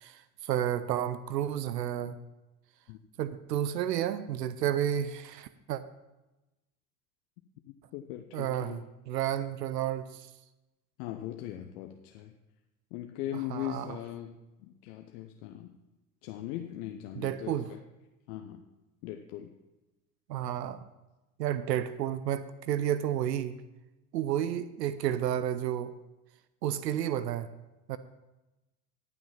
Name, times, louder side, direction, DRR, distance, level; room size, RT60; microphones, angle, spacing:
voice 1, 0.0-2.2 3.2-5.8 8.3-10.3 13.5-13.9 17.2-17.7 20.3-20.9 21.4-23.6 24.1-25.9 26.6-27.5 27.9-28.0, right 11 dB, 85° right, 14 dB, 0.6 m, -31 dB
voice 2, 7.9-8.8 11.0-12.3 12.9-15.7 16.2-17.8 18.3-18.6 19.0-19.5, left 13 dB, 60° left, 5 dB, 0.8 m, -40 dB
12.0 x 6.0 x 5.7 m, 1.0 s
hypercardioid pair, 80°, 48 cm